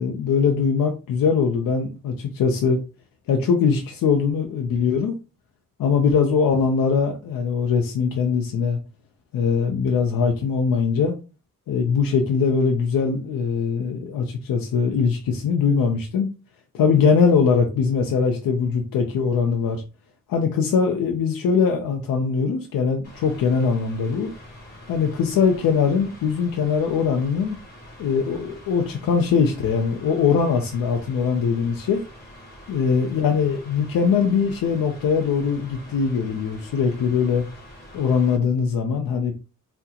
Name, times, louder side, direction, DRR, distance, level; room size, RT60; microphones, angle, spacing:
voice 1, 0.0-2.8 3.3-5.1 5.8-8.8 9.3-11.2 11.7-16.3 16.7-19.8 20.3-24.3 24.9-27.6 28.0-32.0 32.7-37.5 37.9-39.3, left 6 dB, 85° left, 3 dB, 0.6 m, -21 dB
Mechanical fan, 23.0-38.4, left 1 dB, 30° left, 1.5 m, -45 dB
3.7 x 2.2 x 2.8 m, 0.32 s
cardioid pair, 100°, 33 cm